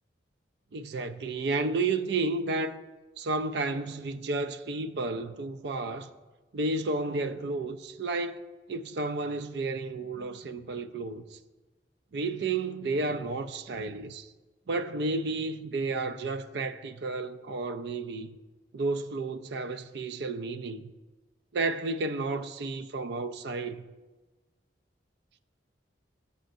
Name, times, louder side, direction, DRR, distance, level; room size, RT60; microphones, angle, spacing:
voice 1, 0.7-2.8 3.2-6.1 6.5-8.4 8.7-11.4 12.1-14.3 14.7-18.4 18.7-20.9 21.5-23.8, right 3 dB, 65° right, 0.4 m, -32 dB
13.5 x 6.8 x 2.6 m
head